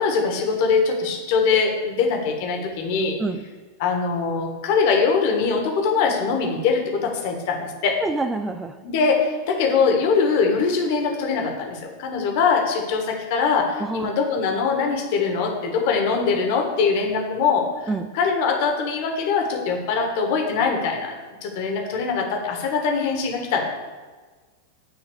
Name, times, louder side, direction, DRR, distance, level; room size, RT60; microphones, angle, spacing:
voice 1, 0.0-3.2 3.8-8.0 8.8-21.1 21.4-23.7, left 5 dB, 50° left, 2 dB, 1.6 m, -22 dB
voice 2, 8.0-8.8 13.8-14.1 17.9-18.1, right 3 dB, 15° right, 9 dB, 0.4 m, -26 dB
9.4 x 3.9 x 7.0 m, 1.4 s
figure-of-eight pair, 90°, 0 cm